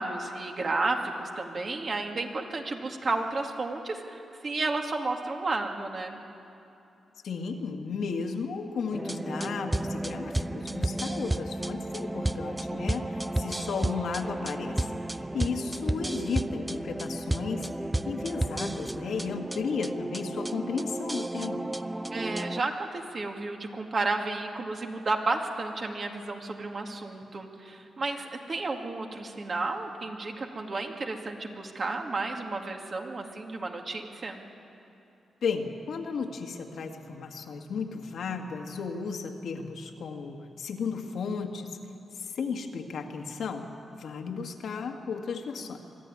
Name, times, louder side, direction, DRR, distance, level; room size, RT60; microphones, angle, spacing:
voice 1, 0.0-6.2 15.3-15.4 22.1-34.4, right 3 dB, 45° right, 3 dB, 2.2 m, -32 dB
voice 2, 7.2-17.7 18.1-21.7 35.4-41.8 42.2-43.7 43.9-45.8, left 5 dB, 75° left, 3 dB, 1.8 m, -34 dB
sound 1, 8.9-22.6, right 1 dB, 15° right, 0.5 m, -32 dB
24.0 x 13.0 x 9.7 m, 2.8 s
cardioid pair, 85°, 0 cm